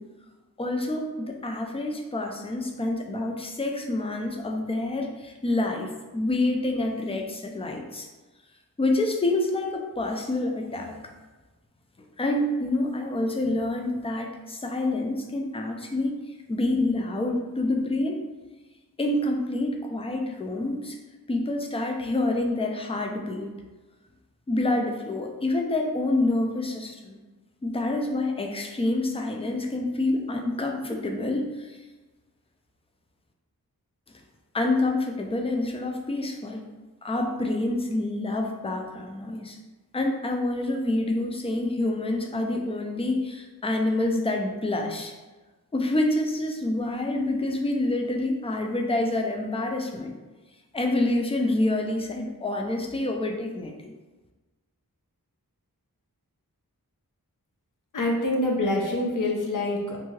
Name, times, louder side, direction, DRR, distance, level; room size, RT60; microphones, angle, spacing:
voice 1, 0.6-8.1 8.8-11.0 12.2-16.2 16.5-18.2 19.0-21.0 21.3-23.5 24.5-27.2 27.6-31.8 34.5-36.6 37.0-39.6 39.9-45.1 45.7-50.1 50.7-53.9, left 2 dB, 15° left, 2 dB, 0.3 m, -27 dB
voice 2, 57.9-60.0, left 1 dB, 60° left, -1 dB, 0.6 m, -26 dB
2.6 x 2.3 x 3.1 m, 1.2 s
wide cardioid pair, 60°, 37 cm